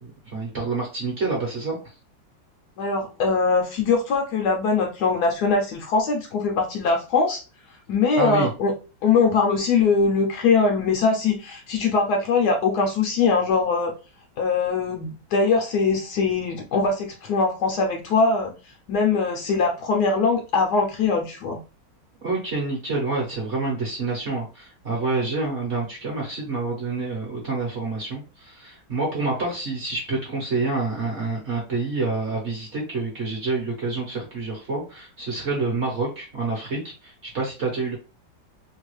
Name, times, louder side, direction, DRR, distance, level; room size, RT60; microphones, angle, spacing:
voice 1, 0.0-1.9 8.2-8.5 22.2-38.0, right 3 dB, 50° right, -2 dB, 0.9 m, -28 dB
voice 2, 2.8-7.4 7.9-8.7 9.0-13.9 14.4-18.5 18.9-21.6, left 4 dB, 70° left, 3 dB, 1.0 m, -22 dB
3.1 x 2.3 x 3.1 m, 0.32 s
omnidirectional pair, 2.0 m